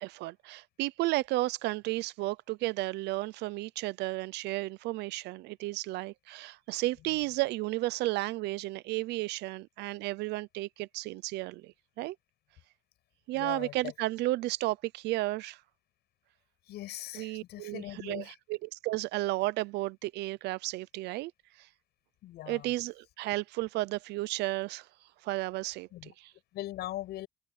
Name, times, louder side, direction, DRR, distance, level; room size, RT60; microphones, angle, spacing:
voice 1, 0.0-12.2 13.3-15.6 17.1-21.3 21.6-21.7 22.5-24.9 25.2-26.3, right 19 dB, 85° right, 0.7 m, -33 dB
voice 2, 13.3-13.9 16.7-18.3 22.2-22.7 25.9-26.1 26.5-27.3, left 15 dB, 75° left, 7.7 m, -40 dB
open air
cardioid pair, 110°, 17 cm